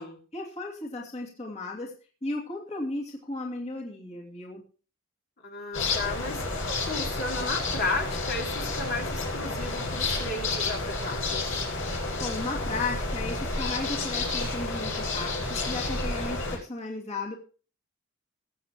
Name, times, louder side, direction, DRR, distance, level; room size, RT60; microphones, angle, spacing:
voice 1, 0.0-1.9 2.2-4.6 11.9-17.4, left 2 dB, 35° left, -2 dB, 2.7 m, -35 dB
voice 2, 5.4-11.6, left 3 dB, 50° left, 0 dB, 2.9 m, -34 dB
sound 1, 5.7-16.6, left 3 dB, 75° left, 7.2 m, -30 dB
22.0 x 8.2 x 3.1 m, 0.38 s
head